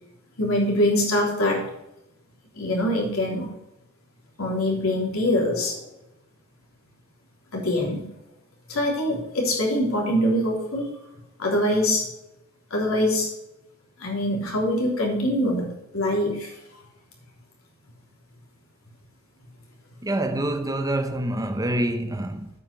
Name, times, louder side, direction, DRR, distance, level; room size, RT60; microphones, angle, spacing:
voice 1, 0.4-1.7 2.6-3.5 4.4-5.8 7.5-8.1 8.7-10.9 11.4-12.1 12.7-13.3 14.0-16.5, left 1 dB, 85° left, 3.4 m, -24 dB
voice 2, 20.0-22.5, right 1 dB, 15° right, 0.7 m, -26 dB
8.7 x 5.7 x 6.7 m
head